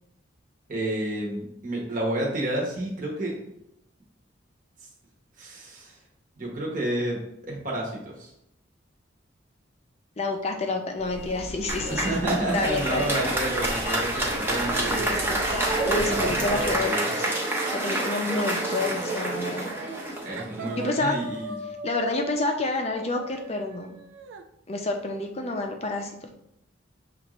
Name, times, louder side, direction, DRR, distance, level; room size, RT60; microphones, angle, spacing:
voice 1, 0.7-3.4 5.4-6.0 6.4-8.3 11.8-15.2 15.8-17.1 20.2-21.7, right 1 dB, 45° right, -2 dB, 1.0 m, -30 dB
voice 2, 10.2-12.2 12.5-13.2 14.9-15.4 15.8-17.3 17.7-19.7 20.8-21.2 21.8-24.0 24.7-26.3, left 2 dB, 35° left, 3 dB, 0.5 m, -29 dB
sound 1, 11.0-16.9, left 1 dB, 75° left, 0.7 m, -38 dB
Applause, 11.7-21.0, right 1 dB, 10° right, 0.7 m, -28 dB
sound 2, 19.2-19.5 19.7-20.1 20.4-24.4, right 2 dB, 75° right, 0.4 m, -40 dB
6.3 x 2.5 x 3.0 m, 0.78 s
head